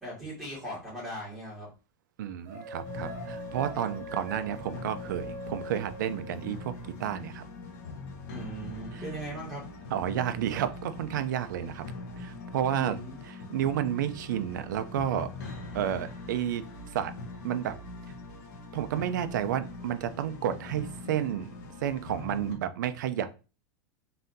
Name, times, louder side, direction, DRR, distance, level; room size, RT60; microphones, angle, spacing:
voice 1, 0.0-1.7 8.3-9.6 12.7-13.1, right 1 dB, ahead, -9 dB, 2.3 m, -39 dB
voice 2, 2.2-7.4 8.9-9.1 9.9-11.9 12.2-13.0 13.2-16.6 16.9-17.1 17.4-17.8 18.7-21.5 21.8-23.3, right 10 dB, 70° right, 11 dB, 0.5 m, -31 dB
sound 1, 2.5-6.9, left 1 dB, 50° right, 2.2 m, -43 dB
sound 2, 2.8-22.5, left 2 dB, 55° left, 1.2 m, -42 dB
4.1 x 3.7 x 2.7 m, 0.32 s
supercardioid pair, 165°, 11 cm